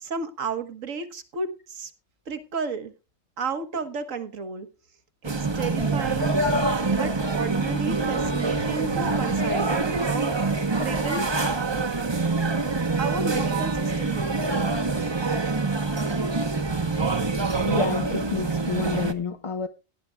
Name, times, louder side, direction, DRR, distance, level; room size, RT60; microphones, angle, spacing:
voice 1, 0.0-1.9 2.3-2.9 3.4-4.7 5.2-6.4 6.9-10.3 10.8-11.4 13.0-14.7, right 5 dB, 75° right, 1.7 m, -32 dB
sound 1, 5.2-19.1, right 3 dB, 20° right, 0.9 m, -25 dB
voice 2, 17.7-19.7, left 4 dB, 35° left, 0.6 m, -29 dB
17.5 x 11.0 x 2.3 m
omnidirectional pair, 1.4 m